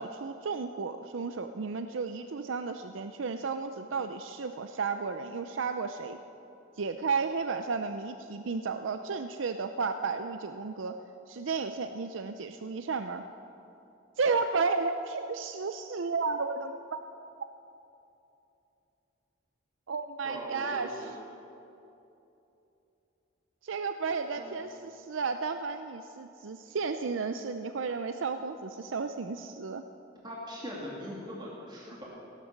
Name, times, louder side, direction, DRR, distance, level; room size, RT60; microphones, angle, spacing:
voice 1, 0.0-6.2 6.8-10.9 11.3-13.2 14.2-17.0 19.9-20.9 23.6-29.8, right 4 dB, 70° right, 8 dB, 0.5 m, -33 dB
voice 2, 20.2-21.1 24.4-24.6 30.2-32.1, equal, 25° right, -5 dB, 2.3 m, -40 dB
16.5 x 11.5 x 7.3 m, 2.9 s
head